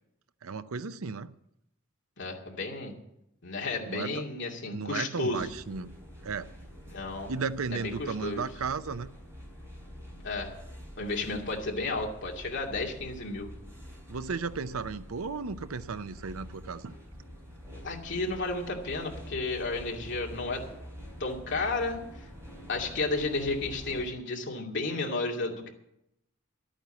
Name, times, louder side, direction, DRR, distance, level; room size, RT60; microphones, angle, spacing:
voice 1, 0.4-1.3 3.9-4.2 4.7-5.9 6.2-6.5 7.3-9.1 14.1-16.9, right 5 dB, 80° right, 0.6 m, -34 dB
voice 2, 2.2-3.0 3.4-5.5 6.9-7.3 7.7-8.5 10.2-10.5 11.0-13.5 17.8-20.6 21.2-22.0 22.7-25.7, left 3 dB, 55° left, 2.5 m, -32 dB
sound 1, 5.3-24.1, equal, 10° right, 4.4 m, -46 dB
12.5 x 9.1 x 8.3 m
head